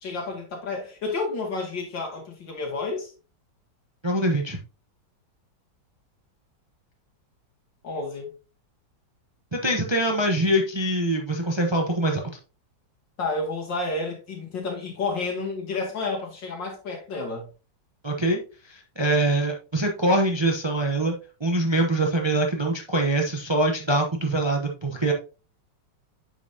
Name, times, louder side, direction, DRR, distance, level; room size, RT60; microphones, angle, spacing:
voice 1, 0.0-3.1 7.8-8.3 13.2-17.5, left 3 dB, 85° left, 3.0 m, -30 dB
voice 2, 4.0-4.6 9.5-12.2 18.0-25.1, right 1 dB, 25° right, 0.6 m, -24 dB
8.9 x 5.3 x 2.8 m
omnidirectional pair, 1.9 m